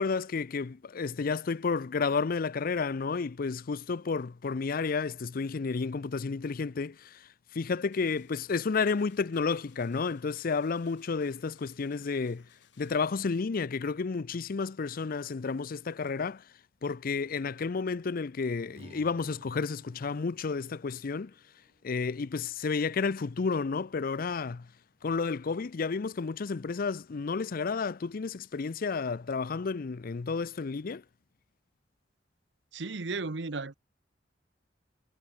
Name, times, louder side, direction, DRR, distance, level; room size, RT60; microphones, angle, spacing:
voice 1, 0.0-12.5 12.8-16.4 16.8-21.3 21.8-24.7 25.0-31.0, left 4 dB, 55° left, 0.5 m, -31 dB
sound 1, 7.9-13.4, left 8 dB, 90° left, 7.4 m, -65 dB
Strum, 18.7-23.1, right 1 dB, 35° right, 3.1 m, -57 dB
voice 2, 32.7-33.8, right 3 dB, 70° right, 1.1 m, -34 dB
head